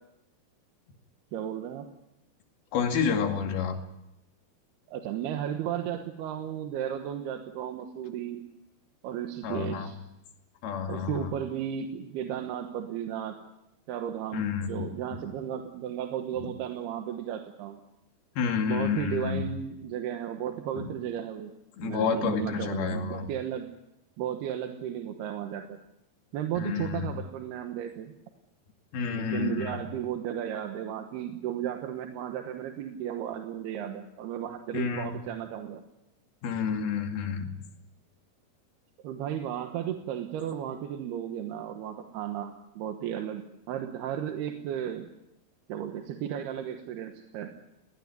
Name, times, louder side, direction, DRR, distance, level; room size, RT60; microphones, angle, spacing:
voice 1, 1.3-1.9 4.9-8.4 9.0-10.0 10.9-13.4 13.9-17.8 18.7-21.5 21.8-23.7 24.2-25.8 26.3-28.1 29.1-35.8 39.0-45.1 45.7-47.5, right 10 dB, 75° right, 5 dB, 3.1 m, -34 dB
voice 2, 2.7-3.8 9.4-9.9 10.6-11.3 14.3-14.9 16.4-16.5 18.4-19.4 20.7-20.9 21.8-23.3 26.6-27.1 28.9-29.8 34.7-35.2 36.4-37.5, left 6 dB, 65° left, 4 dB, 4.0 m, -29 dB
20.0 x 19.5 x 9.7 m, 0.89 s
omnidirectional pair, 5.0 m